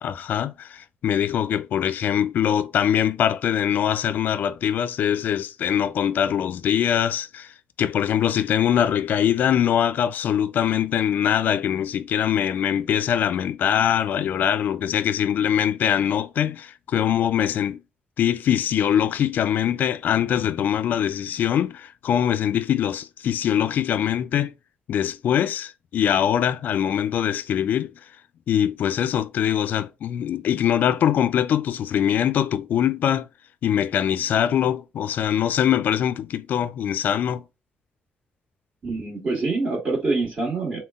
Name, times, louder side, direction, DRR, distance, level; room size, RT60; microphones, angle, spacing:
voice 1, 0.0-7.5 7.8-17.8 18.2-24.5 24.9-27.9 28.5-33.3 33.6-37.4, left 9 dB, 65° left, 0.3 m, -23 dB
voice 2, 38.8-40.8, right 3 dB, 45° right, 1.6 m, -25 dB
3.7 x 2.2 x 3.6 m
cardioid pair, 100°, 3 cm